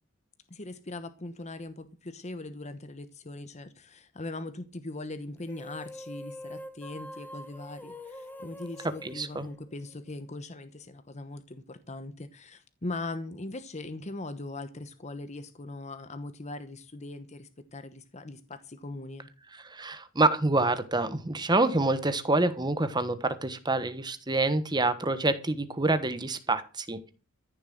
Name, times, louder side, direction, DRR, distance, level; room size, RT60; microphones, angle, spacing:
voice 1, 0.5-19.3, left 2 dB, 35° left, 1.0 m, -40 dB
sound 1, 5.4-10.1, left 1 dB, 10° left, 1.2 m, -44 dB
voice 2, 9.0-9.5 19.5-27.0, right 2 dB, 20° right, 1.2 m, -27 dB
14.0 x 7.0 x 7.7 m
head